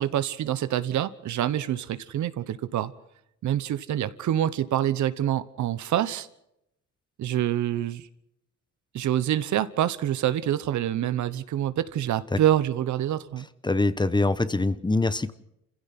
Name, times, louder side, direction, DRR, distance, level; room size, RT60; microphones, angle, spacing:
voice 1, 0.0-2.9 3.4-6.3 7.2-8.1 8.9-13.5, right 11 dB, 70° right, 14 dB, 1.2 m, -26 dB
voice 2, 13.6-15.3, left 2 dB, 15° left, 15 dB, 1.0 m, -24 dB
28.0 x 16.0 x 6.0 m, 0.79 s
cardioid pair, 90°, 30 cm